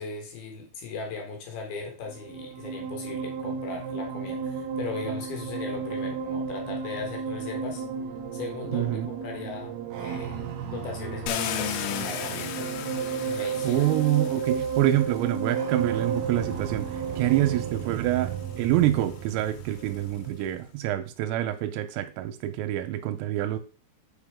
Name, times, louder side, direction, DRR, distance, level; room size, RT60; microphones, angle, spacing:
voice 1, 0.0-7.8 8.3-12.7 13.2-13.9, left 5 dB, 65° left, 2.6 m, -38 dB
sound 1, 2.1-20.5, right 6 dB, 65° right, 2.8 m, -33 dB
voice 2, 8.7-9.1 13.6-23.6, right 13 dB, 90° right, 3.3 m, -26 dB
Car, 11.3-15.4 16.3-16.4 16.9-20.2, left 10 dB, 85° left, 3.3 m, -36 dB
8.1 x 5.3 x 3.5 m
omnidirectional pair, 5.8 m